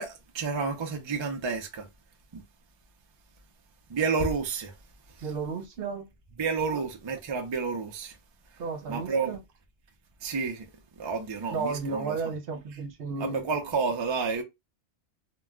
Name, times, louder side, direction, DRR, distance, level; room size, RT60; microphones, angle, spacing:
voice 1, 0.0-1.9 2.3-2.4 3.9-4.7 5.2-5.3 6.4-8.2 8.9-9.4 10.2-10.7 11.0-12.3 13.2-14.4, right 4 dB, 45° right, 0.3 m, -30 dB
voice 2, 5.2-6.0 8.6-9.4 11.5-13.4, right 4 dB, 65° right, 0.8 m, -33 dB
2.2 x 2.1 x 3.5 m
omnidirectional pair, 1.1 m